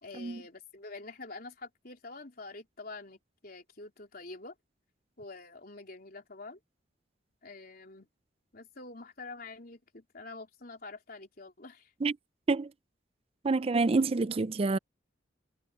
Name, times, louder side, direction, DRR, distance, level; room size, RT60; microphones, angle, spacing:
voice 1, 0.0-4.5 5.2-6.6 7.4-8.1 8.5-11.9, left 3 dB, 50° left, 3.8 m, -46 dB
voice 2, 13.4-14.8, right 3 dB, 30° right, 0.4 m, -27 dB
head